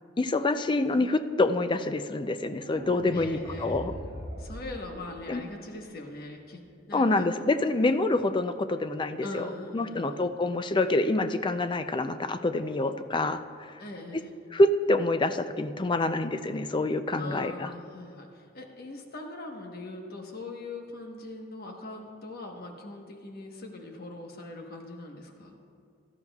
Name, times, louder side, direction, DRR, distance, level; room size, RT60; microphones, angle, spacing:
voice 1, 0.2-3.9 5.3-5.4 6.9-9.5 9.7-13.4 14.5-17.7, left 2 dB, 25° left, 9 dB, 0.4 m, -26 dB
sound 1, 2.6-5.6, equal, 50° right, 1.5 m, -40 dB
voice 2, 3.1-3.8 4.4-7.2 9.2-10.3 13.8-14.3 17.1-25.5, left 2 dB, 50° left, 2 dB, 1.2 m, -41 dB
17.5 x 13.0 x 2.4 m, 2.2 s
head